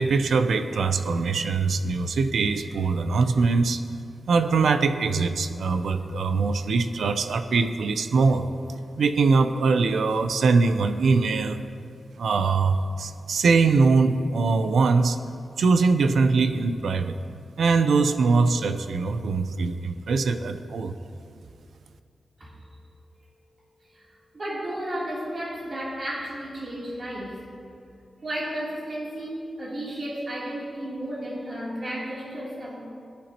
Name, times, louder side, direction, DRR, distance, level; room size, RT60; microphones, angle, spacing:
voice 1, 0.0-3.8 4.3-8.5 9.0-11.6 12.2-15.2 15.6-17.1 17.6-20.9, right 4 dB, 80° right, 9 dB, 0.6 m, -22 dB
voice 2, 23.9-27.4 28.2-32.9, right 1 dB, 35° right, -6 dB, 3.3 m, -33 dB
18.5 x 10.5 x 3.0 m, 2.4 s
wide cardioid pair, 175°, 0 cm